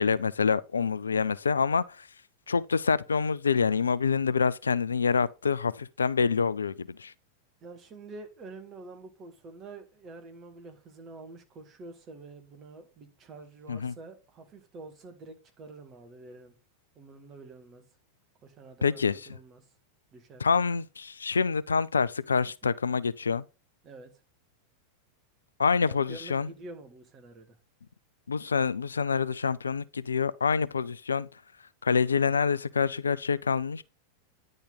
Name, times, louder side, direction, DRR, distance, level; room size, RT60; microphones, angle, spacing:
voice 1, 0.0-2.1 2.5-7.1 13.7-13.9 18.8-19.2 20.4-23.4 25.6-26.5 28.3-31.3 31.8-33.8, left 5 dB, 75° left, 0.3 m, -26 dB
voice 2, 7.6-16.6 16.9-17.8 18.4-19.7 20.1-20.5 22.6-22.7 23.8-24.1 25.8-27.6, right 3 dB, 30° right, 1.7 m, -47 dB
9.9 x 3.9 x 3.9 m
figure-of-eight pair, 90°, 0 cm